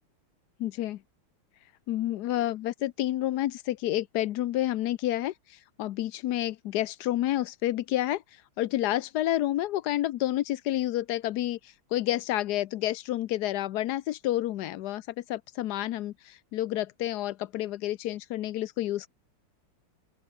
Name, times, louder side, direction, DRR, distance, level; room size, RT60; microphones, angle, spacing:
voice 1, 0.6-1.0 1.9-19.1, left 14 dB, 75° left, 0.9 m, -29 dB
open air
omnidirectional pair, 2.4 m